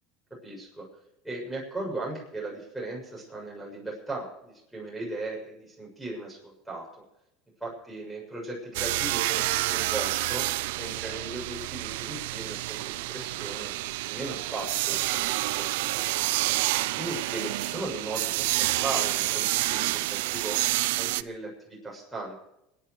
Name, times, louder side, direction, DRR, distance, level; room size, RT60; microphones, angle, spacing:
voice 1, 0.4-0.9 1.2-6.9 7.6-9.4 9.7-10.4 10.8-13.7 14.1-16.0 17.0-20.6 20.9-22.3, right 2 dB, 5° right, -4 dB, 7.0 m, -37 dB
sound 1, 8.7-21.2, right 19 dB, 85° right, 0.6 m, -28 dB
24.0 x 10.0 x 4.8 m, 0.84 s
supercardioid pair, 115°, 0 cm